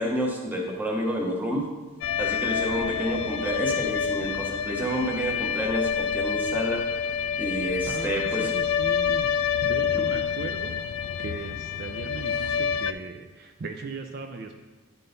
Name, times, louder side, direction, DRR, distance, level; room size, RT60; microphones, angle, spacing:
voice 1, 0.0-1.7 2.2-6.9 7.4-8.5 9.9-10.1, equal, 10° right, 0 dB, 0.8 m, -29 dB
sound 1, 2.0-12.9, left 7 dB, 75° left, 0.3 m, -28 dB
voice 2, 7.9-9.3 9.6-10.8 11.2-14.6, right 3 dB, 50° right, 4 dB, 0.4 m, -38 dB
10.0 x 3.8 x 3.9 m, 1.3 s
head